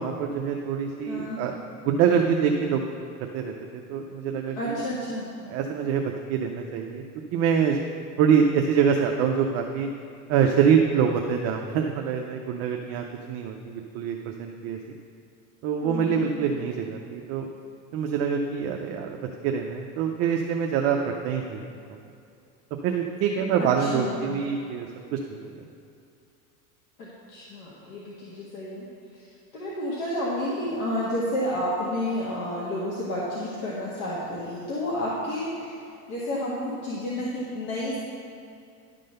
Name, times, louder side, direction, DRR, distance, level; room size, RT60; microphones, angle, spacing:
voice 1, 0.0-1.5 1.8-2.8 3.3-4.8 5.5-7.0 7.3-7.8 8.2-9.9 10.3-13.6 13.9-14.8 15.6-17.5 17.9-21.6 22.8-25.5, right 7 dB, 35° right, 2 dB, 0.5 m, -25 dB
voice 2, 1.1-1.4 4.6-5.3 15.8-16.3 23.6-24.2 27.0-28.9 29.5-35.7 36.1-38.0, left 1 dB, 65° left, -6 dB, 1.9 m, -30 dB
11.5 x 3.8 x 6.5 m, 2.5 s
supercardioid pair, 140°, 45 cm